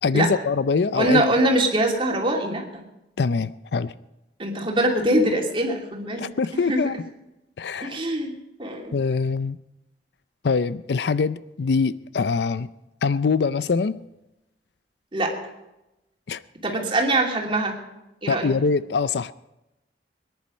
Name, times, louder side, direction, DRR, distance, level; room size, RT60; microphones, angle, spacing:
voice 1, 0.0-1.2 3.2-3.9 6.2-6.9 7.6-8.0 8.9-9.6 10.4-12.7 13.0-14.0 16.3-16.4 18.3-19.3, left 4 dB, 65° left, 16 dB, 0.5 m, -23 dB
voice 2, 0.9-2.8 4.4-6.8 7.8-8.3 8.6-9.0 15.1-15.4 16.6-17.8 18.2-18.5, right 1 dB, 30° right, 0 dB, 2.8 m, -23 dB
22.5 x 10.5 x 5.3 m, 0.94 s
head